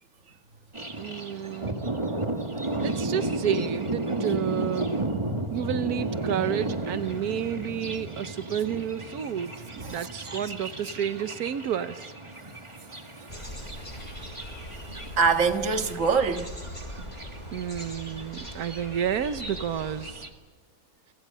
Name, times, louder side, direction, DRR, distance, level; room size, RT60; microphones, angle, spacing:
Thunder, 0.7-20.3, right 2 dB, 20° right, 1.9 m, -34 dB
voice 1, 1.0-1.9 2.8-5.0 5.5-9.5 9.9-12.1 17.5-20.2, right 9 dB, 90° right, 1.4 m, -30 dB
voice 2, 9.7-10.5 15.2-16.5, right 5 dB, 55° right, 2.0 m, -25 dB
sound 1, 13.3-20.1, equal, 35° left, 7.5 m, -41 dB
29.5 x 25.0 x 5.6 m
omnidirectional pair, 1.6 m